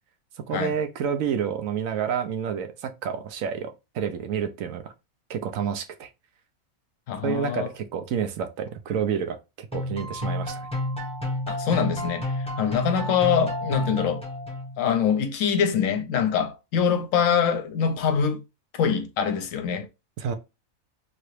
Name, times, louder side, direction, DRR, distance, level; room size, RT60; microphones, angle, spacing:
voice 1, 0.4-4.9 5.3-6.1 7.2-10.7 20.2-20.3, right 7 dB, 75° right, 1.0 m, -29 dB
voice 2, 7.1-7.7 11.5-14.2 14.8-18.4 18.7-19.9, left 7 dB, 70° left, 1.0 m, -24 dB
sound 1, 9.7-14.9, left 1 dB, 5° left, 0.7 m, -30 dB
3.0 x 2.8 x 3.1 m
omnidirectional pair, 1.5 m